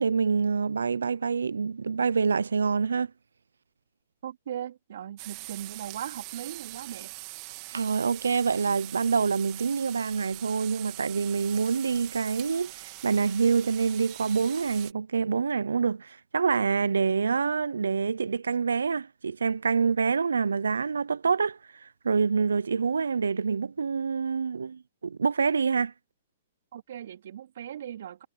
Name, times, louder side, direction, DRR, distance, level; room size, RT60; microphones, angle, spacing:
voice 1, 0.0-3.1 7.7-25.9, right 5 dB, 85° right, 0.7 m, -26 dB
voice 2, 4.2-7.1 26.7-28.3, right 10 dB, 65° right, 3.9 m, -38 dB
sound 1, 5.2-14.9, right 30 dB, 45° right, 3.0 m, -43 dB
hypercardioid pair, 115°, 0 cm